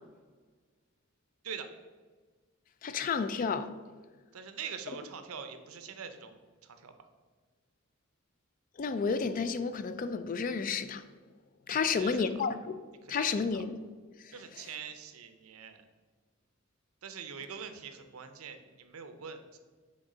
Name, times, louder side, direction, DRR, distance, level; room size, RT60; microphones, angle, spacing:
voice 1, 2.8-3.7 8.8-11.0 11.7-12.8 13.1-13.7 14.2-14.3, left 5 dB, 40° left, 0.3 m, -31 dB
voice 2, 4.3-6.4 6.6-6.9 11.7-12.2 13.0-13.6 14.3-15.8 17.0-19.6, right 6 dB, 80° right, 0.6 m, -44 dB
6.5 x 3.5 x 4.9 m
head